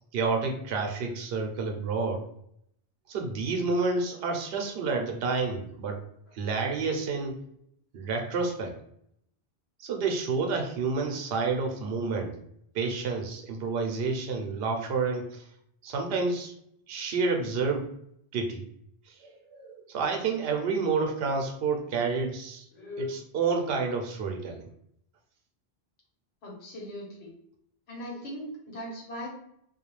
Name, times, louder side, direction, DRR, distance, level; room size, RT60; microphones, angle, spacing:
voice 1, 0.1-2.2 3.1-6.0 6.3-7.4 7.9-8.7 9.8-12.4 12.7-15.5 15.8-16.5 16.9-17.9 18.3-18.7 19.1-22.7 23.0-24.6, right 4 dB, 75° right, 3 dB, 0.8 m, -29 dB
voice 2, 22.7-23.2 26.4-27.3 27.9-29.3, left 1 dB, 90° left, -3 dB, 1.3 m, -38 dB
2.4 x 2.2 x 3.0 m, 0.72 s
omnidirectional pair, 1.1 m